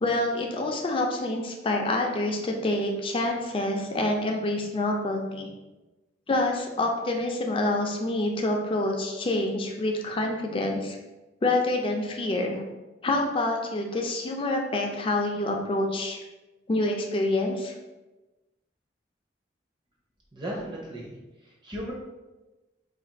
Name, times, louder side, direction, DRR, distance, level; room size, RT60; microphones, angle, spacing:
voice 1, 0.0-5.5 6.3-11.0 11.4-12.6 13.0-16.2 16.7-17.7, left 2 dB, 30° left, 1 dB, 0.4 m, -27 dB
voice 2, 20.3-21.1 21.4-21.9, equal, 25° right, -3 dB, 0.7 m, -36 dB
2.5 x 2.5 x 4.0 m, 1.1 s
head